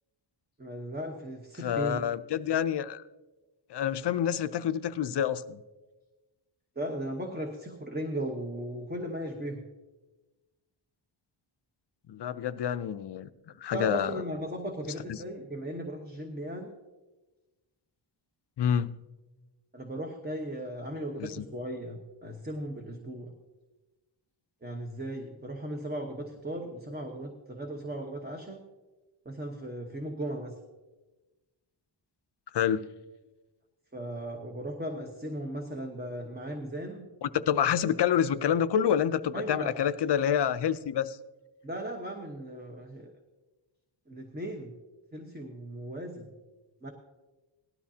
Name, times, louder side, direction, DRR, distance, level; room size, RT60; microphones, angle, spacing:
voice 1, 0.6-2.0 6.8-9.6 13.7-16.7 19.7-23.3 24.6-28.6 29.2-30.5 33.9-37.1 39.3-39.7 41.6-43.1 44.1-44.7 45.1-46.3 46.8-46.9, right 1 dB, 20° right, 2 dB, 1.1 m, -37 dB
voice 2, 1.6-3.0 3.7-5.6 12.1-13.3 13.6-14.2 15.1-15.2 18.6-19.0 21.2-21.4 32.5-32.8 37.2-41.2, left 9 dB, 60° left, 12 dB, 0.6 m, -28 dB
18.5 x 12.5 x 2.8 m, 1.2 s
wide cardioid pair, 125°, 48 cm